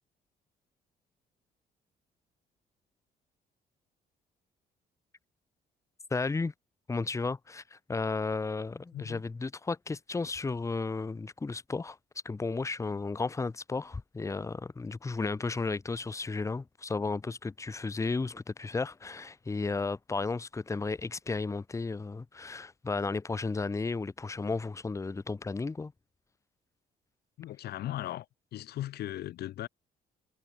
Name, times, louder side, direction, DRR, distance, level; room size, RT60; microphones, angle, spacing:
voice 1, 6.1-6.5 6.9-12.0 12.2-25.9, left 3 dB, 20° left, 1.5 m, -33 dB
voice 2, 27.4-28.3 28.5-29.7, left 13 dB, 75° left, 1.5 m, -37 dB
cardioid pair, 130°, 17 cm